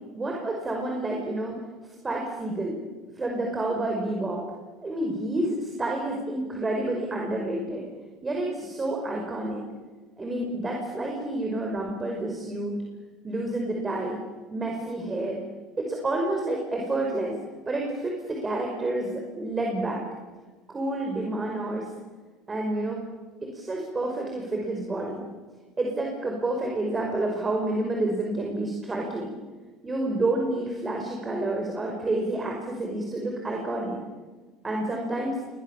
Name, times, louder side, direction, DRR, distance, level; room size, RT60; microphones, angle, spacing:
voice 1, 0.1-1.6 2.0-2.8 3.2-4.4 4.8-7.9 8.2-9.6 10.2-12.8 13.2-14.2 14.5-15.4 15.8-17.3 17.7-20.0 20.7-21.8 22.5-23.0 23.4-25.3 25.8-29.3 29.8-34.0 34.6-35.4, right 2 dB, 20° right, 1 dB, 5.5 m, -29 dB
29.0 x 24.0 x 7.4 m, 1.3 s
supercardioid pair, 110°, 0 cm